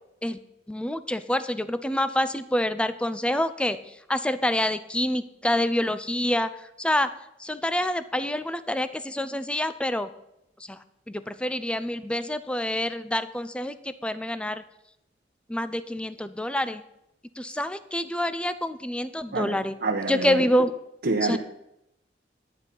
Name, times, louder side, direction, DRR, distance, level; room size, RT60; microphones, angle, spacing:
voice 1, 0.7-6.5 6.8-7.1 7.4-10.1 10.7-10.8 11.1-14.6 15.5-16.8 17.4-19.7 20.1-20.7 21.3-21.4, left 1 dB, 5° left, 13 dB, 0.5 m, -27 dB
voice 2, 19.3-20.7 21.0-21.4, right 3 dB, 60° right, 0 dB, 1.0 m, -28 dB
11.5 x 9.7 x 5.4 m, 0.83 s
head